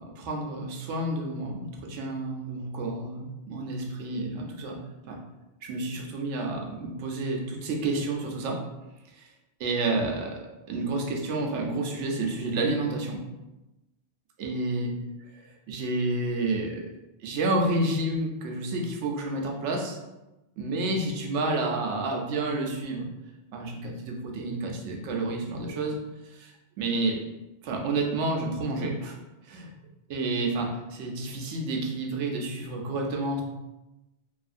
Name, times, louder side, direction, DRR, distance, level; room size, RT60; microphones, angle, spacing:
voice 1, 0.2-4.8 5.1-5.2 5.6-8.6 9.6-10.3 10.7-13.2 14.4-14.9 15.7-16.8 17.2-20.0 20.6-23.0 23.5-26.0 26.3-26.5 26.8-27.2 27.6-29.2 29.5-29.7 30.1-33.4, right 2 dB, 80° right, 1 dB, 0.9 m, -29 dB
2.7 x 2.4 x 2.4 m, 0.99 s
omnidirectional pair, 1.2 m